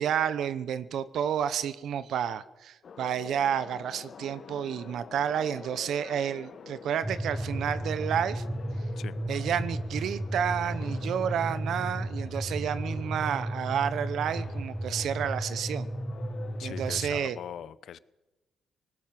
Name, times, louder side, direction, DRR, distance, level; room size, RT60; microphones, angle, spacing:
voice 1, 0.0-8.4 9.3-15.9 16.6-17.4, right 9 dB, 70° right, 14 dB, 0.9 m, -30 dB
sound 1, 2.8-16.8, left 6 dB, 50° left, 1.4 m, -47 dB
sound 2, 7.0-17.2, right 1 dB, 5° right, 1.1 m, -34 dB
voice 2, 16.6-18.0, left 9 dB, 65° left, 18 dB, 0.8 m, -41 dB
19.5 x 18.0 x 7.6 m, 1.1 s
cardioid pair, 90°, 0 cm